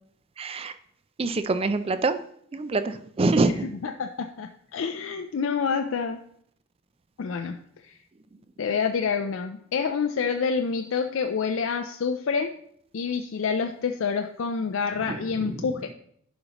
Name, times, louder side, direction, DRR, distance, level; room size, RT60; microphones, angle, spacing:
voice 1, 0.4-0.7 1.2-2.2 2.5-3.7 15.1-15.2 15.5-15.6, right 3 dB, 25° right, 12 dB, 0.3 m, -25 dB
voice 2, 3.4-6.2 7.2-7.6 7.9-8.0 8.6-12.5 12.9-15.9, left 5 dB, 65° left, 5 dB, 0.4 m, -28 dB
11.0 x 5.2 x 2.9 m, 0.66 s
head